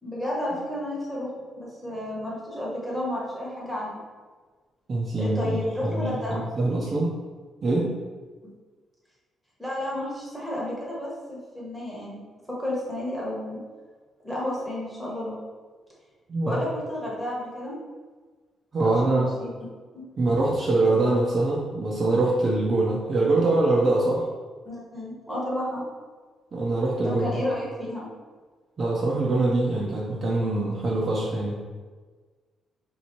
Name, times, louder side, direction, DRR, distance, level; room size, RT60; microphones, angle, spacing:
voice 1, 0.0-1.3 1.5-4.0 5.2-6.4 9.6-12.2 12.6-13.6 14.2-15.4 16.5-17.7 18.8-19.5 19.9-20.0 24.7-25.8 27.0-28.1, left 1 dB, ahead, -6 dB, 1.0 m, -31 dB
voice 2, 4.9-5.6 5.8-7.1 7.6-7.9 16.3-16.6 18.7-19.3 20.2-24.3 26.5-27.3 28.8-31.5, right 2 dB, 30° right, -4 dB, 0.5 m, -24 dB
3.5 x 2.8 x 4.4 m, 1.4 s
cardioid pair, 170°, 0 cm